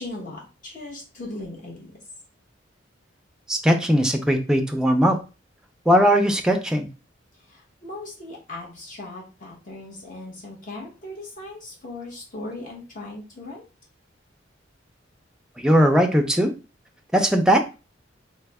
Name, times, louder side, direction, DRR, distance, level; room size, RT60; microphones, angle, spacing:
voice 1, 0.0-1.9 7.5-13.6, left 2 dB, 45° left, -3 dB, 0.9 m, -38 dB
voice 2, 3.5-5.2 5.9-6.9 15.6-16.5 17.1-17.6, equal, 5° right, 4 dB, 0.4 m, -19 dB
3.2 x 2.0 x 3.4 m, 0.31 s
head